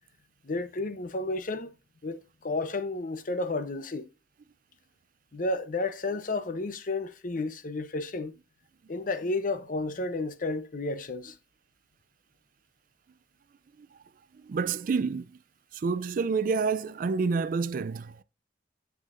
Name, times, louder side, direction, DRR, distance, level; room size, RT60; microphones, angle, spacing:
voice 1, 0.4-1.7 2.0-4.1 5.3-8.3 8.9-11.4, left 2 dB, 50° left, 0.7 m, -32 dB
voice 2, 14.4-15.3 15.7-18.2, right 5 dB, 50° right, 0.3 m, -28 dB
7.2 x 6.2 x 2.5 m
head